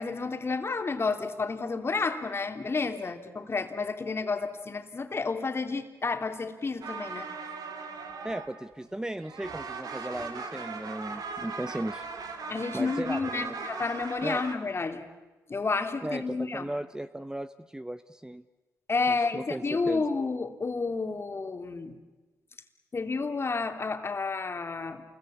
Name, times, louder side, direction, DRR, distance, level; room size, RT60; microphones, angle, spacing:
voice 1, 0.0-7.3 12.5-15.1 15.5-16.7 18.9-22.0 22.9-25.0, left 4 dB, 35° left, 6 dB, 2.8 m, -30 dB
sound 1, 6.8-8.9 9.2-14.5, right 4 dB, 65° right, 2.9 m, -39 dB
voice 2, 8.2-12.0 12.7-13.6 14.2-14.4 16.0-18.4 19.1-20.1, right 1 dB, 10° right, 12 dB, 0.8 m, -36 dB
28.5 x 21.5 x 8.6 m, 1.2 s
cardioid pair, 65°, 7 cm